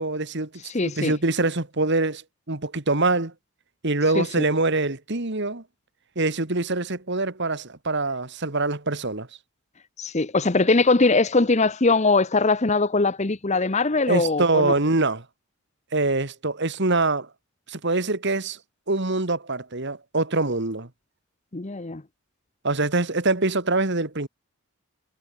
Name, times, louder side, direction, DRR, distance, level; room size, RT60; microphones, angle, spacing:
voice 1, 0.0-0.5 0.8-2.2 2.5-3.3 3.8-5.6 6.2-9.3 14.1-15.2 15.9-17.3 17.7-18.6 18.9-20.9 22.6-24.3, right 2 dB, 50° right, 2.0 m, -24 dB
voice 2, 0.6-1.1 4.1-4.4 10.0-14.7 21.5-22.0, left 3 dB, 30° left, 0.8 m, -21 dB
head